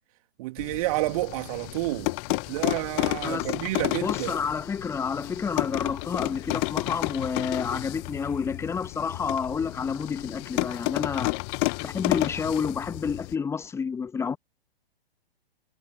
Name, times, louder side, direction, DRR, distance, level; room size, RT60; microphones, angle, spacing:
voice 1, 0.4-4.4, right 20 dB, 35° right, 2.4 m, -30 dB
sound 1, 0.6-13.3, left 38 dB, 25° left, 1.0 m, -31 dB
voice 2, 4.0-11.4 11.8-14.4, left 6 dB, 10° left, 1.3 m, -29 dB
figure-of-eight pair, 115°, 31 cm